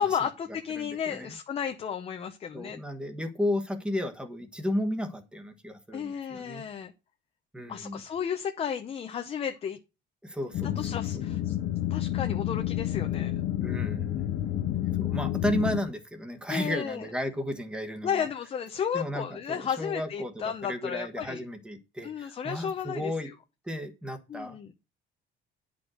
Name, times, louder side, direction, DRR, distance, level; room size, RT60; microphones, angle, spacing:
voice 1, 0.0-2.8 5.9-6.9 7.7-9.8 10.8-11.6 11.9-13.3 16.5-17.1 18.0-21.4 22.0-23.3 24.3-24.7, left 8 dB, 30° left, 6 dB, 0.8 m, -33 dB
voice 2, 0.8-1.3 2.5-6.6 7.5-8.0 10.2-11.0 13.6-14.1 14.9-18.3 18.9-20.3 20.6-23.3 23.6-24.6, equal, 5° right, 7 dB, 1.3 m, -33 dB
sound 1, 10.5-15.8, left 12 dB, 70° left, 1.1 m, -29 dB
10.5 x 5.2 x 6.2 m, 0.28 s
cardioid pair, 170°, 20 cm